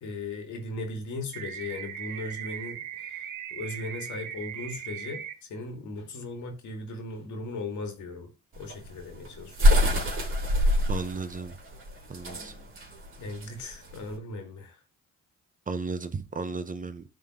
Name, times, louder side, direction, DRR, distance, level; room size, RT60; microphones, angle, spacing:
voice 1, 0.0-9.8 13.2-14.8, left 2 dB, 75° left, 2.0 m, -38 dB
sound 1, 1.3-5.3, right 9 dB, 85° right, 0.9 m, -39 dB
sound 2, 8.6-14.1, left 1 dB, 45° right, 2.8 m, -25 dB
voice 2, 10.9-11.5 12.1-12.5 15.7-17.0, right 4 dB, 25° right, 0.7 m, -34 dB
11.0 x 3.8 x 2.9 m
cardioid pair, 90°, 30 cm